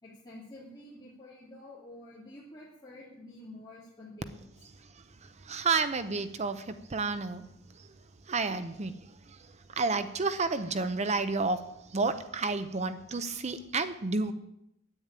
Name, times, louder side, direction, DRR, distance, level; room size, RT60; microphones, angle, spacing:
voice 1, 0.0-4.5, left 1 dB, 20° left, -8 dB, 2.9 m, -49 dB
voice 2, 5.5-7.4 8.3-8.9 9.8-11.6 11.9-14.3, right 4 dB, 35° right, 11 dB, 0.7 m, -30 dB
10.0 x 9.0 x 8.9 m, 0.80 s
head